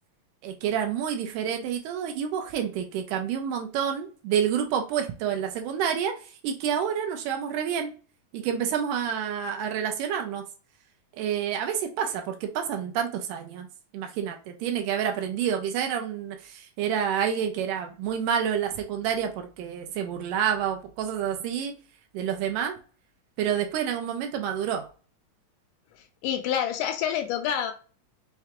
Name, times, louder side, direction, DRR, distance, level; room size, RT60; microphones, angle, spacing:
voice 1, 0.4-7.9 8.3-10.4 11.2-13.7 13.9-21.7 22.1-22.8 23.4-24.9, right 8 dB, 80° right, 2.1 m, -28 dB
voice 2, 26.2-27.7, left 9 dB, 80° left, 2.0 m, -27 dB
5.8 x 2.2 x 2.9 m
omnidirectional pair, 3.9 m